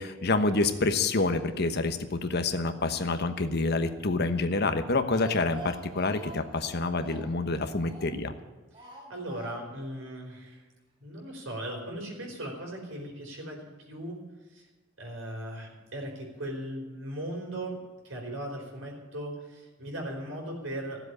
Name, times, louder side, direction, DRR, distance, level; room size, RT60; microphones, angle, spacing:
voice 1, 0.0-8.3, left 3 dB, 55° left, 8 dB, 1.1 m, -27 dB
Speech, 4.8-8.3 8.7-9.9 10.1-10.2 10.5-10.6, right 2 dB, 25° right, 3.4 m, -46 dB
voice 2, 8.8-10.6 11.0-14.2 14.5-14.6 15.0-17.8 18.0-21.0, right 1 dB, 80° right, 1 dB, 4.7 m, -38 dB
15.5 x 7.8 x 9.7 m, 1.3 s
head